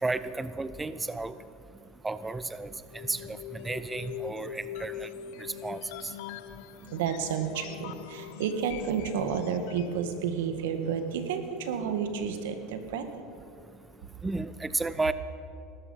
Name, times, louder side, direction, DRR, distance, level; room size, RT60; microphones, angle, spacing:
voice 1, 0.0-1.3 2.0-2.7 3.1-3.4 3.6-5.1 5.6-6.1 14.2-15.1, right 3 dB, 10° right, 14 dB, 0.5 m, -32 dB
sound 1, 2.9-10.1, left 10 dB, 70° left, 0.8 m, -42 dB
voice 2, 6.9-13.0, right 7 dB, 85° right, 8 dB, 1.7 m, -31 dB
19.0 x 13.5 x 5.6 m, 2.5 s
supercardioid pair, 130°, 0 cm